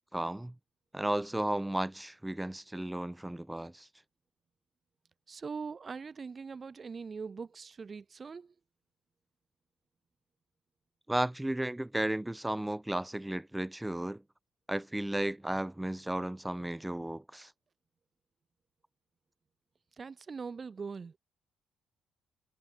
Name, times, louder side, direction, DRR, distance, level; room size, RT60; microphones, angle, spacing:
voice 1, 0.1-0.5 0.9-3.9 11.1-14.2 14.7-17.5, right 1 dB, 10° right, 2.9 m, -34 dB
voice 2, 5.3-8.5 20.0-21.2, right 5 dB, 35° right, 2.1 m, -42 dB
cardioid pair, 90°, 0 cm